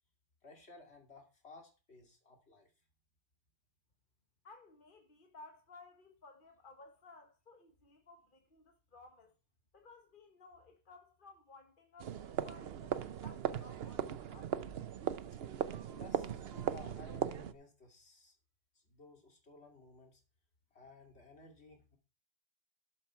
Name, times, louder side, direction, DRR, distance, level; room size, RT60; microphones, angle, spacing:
voice 1, 0.4-2.7 15.9-18.4 18.7-20.2 20.7-22.0, left 3 dB, 75° left, 3.0 m, -57 dB
voice 2, 4.4-9.3 9.7-14.6, left 3 dB, 50° left, 1.4 m, -58 dB
sound 1, 12.0-17.5, right 9 dB, 70° right, 0.9 m, -38 dB
12.0 x 7.4 x 4.4 m
omnidirectional pair, 1.1 m